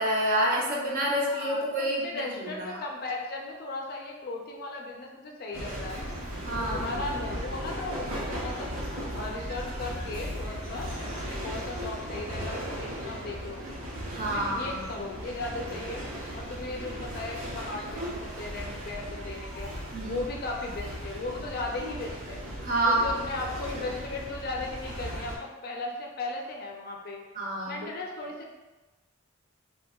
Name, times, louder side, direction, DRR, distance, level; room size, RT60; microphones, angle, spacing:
voice 1, 0.0-2.8 6.4-6.9 14.1-15.1 19.9-20.2 22.6-23.1 23.7-23.9 27.3-27.9, right 1 dB, 40° right, -2 dB, 0.6 m, -28 dB
voice 2, 1.3-6.0 6.6-8.9 9.1-13.7 14.3-16.0 16.3-19.7 20.0-22.4 22.8-27.2 27.7-28.5, left 2 dB, 45° left, 0 dB, 0.4 m, -37 dB
sound 1, 5.5-25.4, equal, 85° right, 0.8 m, -37 dB
2.8 x 2.2 x 3.5 m, 1.2 s
head